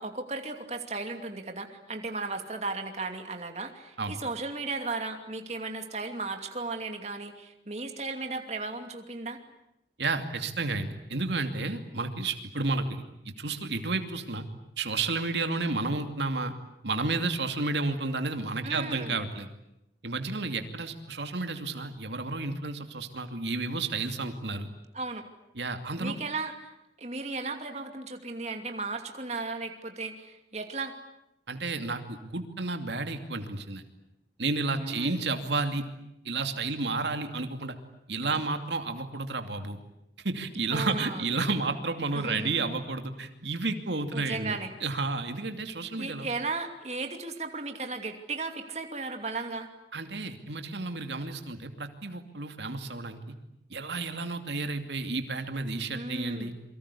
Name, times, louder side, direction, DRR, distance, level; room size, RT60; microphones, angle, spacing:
voice 1, 0.0-9.4 18.6-19.1 24.9-25.3 26.0-30.9 34.8-35.1 40.7-41.2 42.1-42.7 44.1-44.7 46.0-49.7 55.9-56.6, right 3 dB, 35° right, 5 dB, 2.7 m, -35 dB
voice 2, 10.0-13.0 13.4-14.4 14.8-16.5 16.8-19.5 20.0-24.7 25.5-26.1 31.5-33.8 34.4-35.8 36.2-37.7 38.1-39.8 40.2-46.3 49.9-53.2 53.7-56.5, right 3 dB, 80° right, 6 dB, 2.6 m, -31 dB
28.5 x 24.0 x 8.5 m, 0.83 s
head